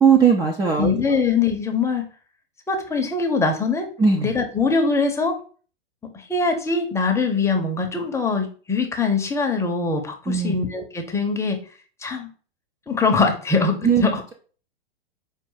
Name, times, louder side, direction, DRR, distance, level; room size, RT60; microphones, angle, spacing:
voice 1, 0.0-0.9 4.0-4.3 10.3-10.6 13.8-14.0, right 6 dB, 15° right, 1 dB, 0.5 m, -18 dB
voice 2, 0.8-2.1 2.7-3.9 4.2-5.4 6.1-11.6 12.0-12.3 12.9-14.2, left 4 dB, 10° left, 3 dB, 0.8 m, -22 dB
5.2 x 2.5 x 3.8 m, 0.40 s
hypercardioid pair, 110°, 29 cm